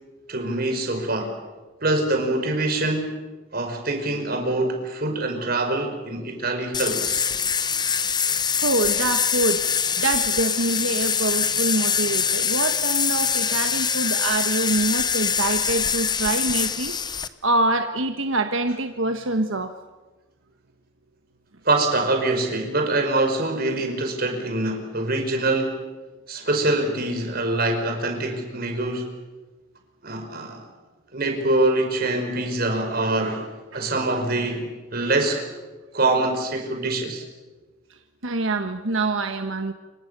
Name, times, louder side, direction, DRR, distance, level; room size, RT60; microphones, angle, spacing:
voice 1, 0.3-1.3 1.8-3.2 3.5-7.2 21.6-25.8 26.3-29.1 30.0-30.6 31.1-33.5 33.7-35.5 35.9-37.2, right 2 dB, 50° right, 4 dB, 4.9 m, -24 dB
sound 1, 6.7-17.3, left 7 dB, 20° left, 0.9 m, -24 dB
voice 2, 8.6-9.6 10.0-16.9 17.4-19.7 33.7-33.9 37.9-39.7, right 2 dB, 85° right, 7 dB, 1.3 m, -25 dB
28.5 x 25.0 x 6.8 m, 1.2 s
head